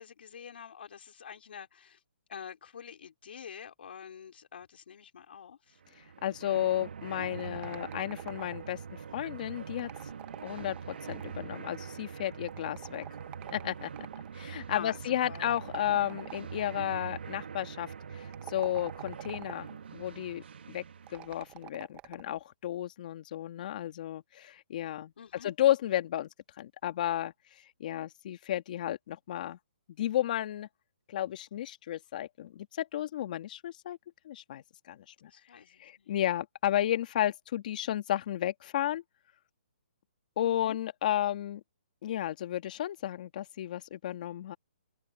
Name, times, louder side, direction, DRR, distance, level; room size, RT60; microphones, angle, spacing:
voice 1, 0.0-2.0 2.3-5.8 14.7-15.5 25.2-25.5 35.2-36.1 40.4-40.8, left 7 dB, 65° left, 4.3 m, -46 dB
sound 1, 5.8-21.6, right 6 dB, 70° right, 2.8 m, -44 dB
voice 2, 6.0-9.9 10.4-13.1 13.5-13.9 14.3-20.8 21.1-25.1 25.4-26.3 26.6-29.6 30.0-30.7 31.1-34.0 34.2-35.3 35.8-39.0 40.4-41.6 42.0-44.6, left 12 dB, 45° left, 1.9 m, -33 dB
sound 2, 7.2-8.8 9.7-11.5 12.5-14.3 15.3-16.7 18.2-19.8 21.1-22.4, right 17 dB, 20° right, 1.5 m, -47 dB
open air
hypercardioid pair, 150°, 6 cm